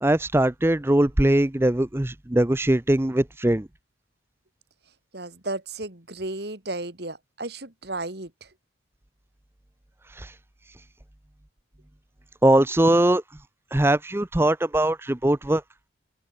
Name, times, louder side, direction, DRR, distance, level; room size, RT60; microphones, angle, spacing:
voice 1, 0.0-3.7 10.1-10.3 12.4-13.2 13.7-15.6, right 1 dB, 10° right, 0.5 m, -21 dB
voice 2, 5.1-8.5, right 2 dB, 55° right, 2.6 m, -34 dB
open air
head